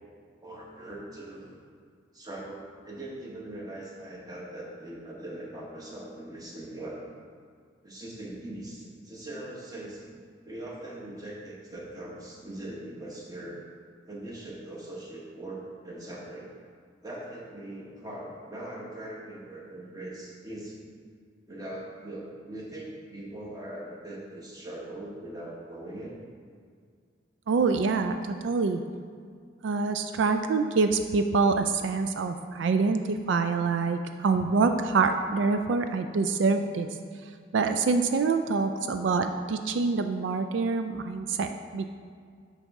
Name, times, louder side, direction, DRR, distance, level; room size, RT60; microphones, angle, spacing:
voice 1, 0.4-1.6 2.1-7.0 7.8-13.6 14.1-16.5 17.0-20.9 21.5-26.2, right 1 dB, 20° right, -3 dB, 1.1 m, -41 dB
voice 2, 27.5-28.8 29.6-36.9 37.5-41.9, right 4 dB, 80° right, 7 dB, 0.3 m, -26 dB
11.0 x 4.1 x 3.6 m, 2.1 s
head